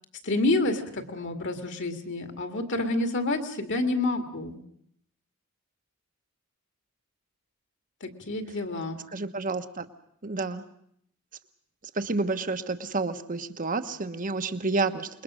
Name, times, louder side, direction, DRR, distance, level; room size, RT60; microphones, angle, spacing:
voice 1, 0.2-4.6 8.0-9.0, left 2 dB, 55° left, 6 dB, 2.3 m, -28 dB
voice 2, 9.1-9.8 10.2-10.6 12.0-15.1, right 3 dB, 40° right, 10 dB, 1.1 m, -29 dB
27.0 x 21.5 x 6.3 m, 0.69 s
head